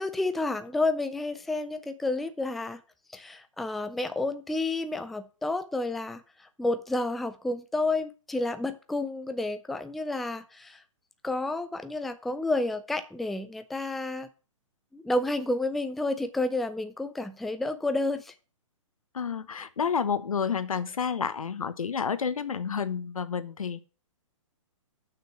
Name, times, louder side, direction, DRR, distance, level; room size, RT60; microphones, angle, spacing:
voice 1, 0.0-2.8 3.1-10.8 11.2-14.3 14.9-18.3, left 2 dB, ahead, 10 dB, 0.3 m, -30 dB
voice 2, 19.1-23.8, left 6 dB, 90° left, 13 dB, 1.1 m, -30 dB
6.9 x 6.2 x 7.6 m, 0.35 s
hypercardioid pair, 145°, 17 cm